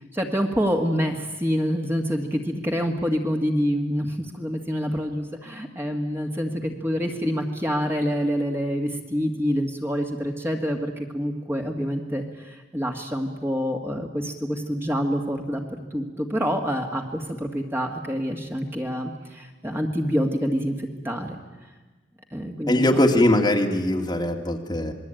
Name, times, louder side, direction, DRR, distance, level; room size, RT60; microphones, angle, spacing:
voice 1, 0.1-15.6 15.9-21.4 22.3-23.0, equal, 10° right, 3 dB, 1.8 m, -27 dB
voice 2, 22.7-24.9, left 1 dB, 20° left, 2 dB, 2.2 m, -21 dB
27.0 x 20.5 x 9.1 m, 1.2 s
head